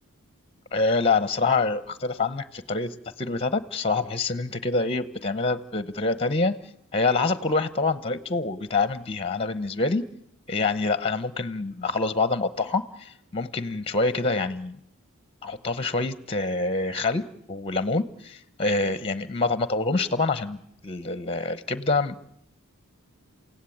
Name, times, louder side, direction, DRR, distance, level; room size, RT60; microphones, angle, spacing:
voice 1, 0.7-6.6 6.9-10.0 10.5-14.8 15.4-17.2 17.5-22.3, left 3 dB, 25° left, 14 dB, 0.9 m, -26 dB
28.5 x 16.5 x 8.6 m, 0.78 s
head